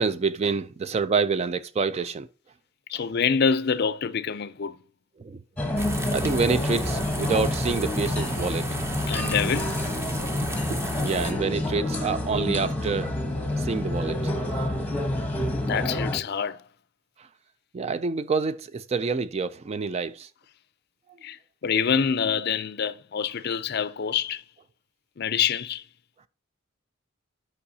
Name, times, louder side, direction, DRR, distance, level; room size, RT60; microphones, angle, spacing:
voice 1, 0.0-2.3 2.9-3.1 5.2-5.7 6.1-8.7 10.7-13.1 13.6-14.2 17.2-17.3 17.7-20.3 21.1-21.2, right 4 dB, 30° right, 0.3 m, -27 dB
voice 2, 2.9-4.8 9.1-9.7 15.7-16.6 21.2-21.4 21.6-24.4 25.2-25.8, left 6 dB, 50° left, 0.4 m, -26 dB
sound 1, 5.6-16.2, left 1 dB, 10° left, 1.0 m, -28 dB
sound 2, 5.8-11.3, equal, 10° right, 0.7 m, -33 dB
11.5 x 5.4 x 2.7 m
head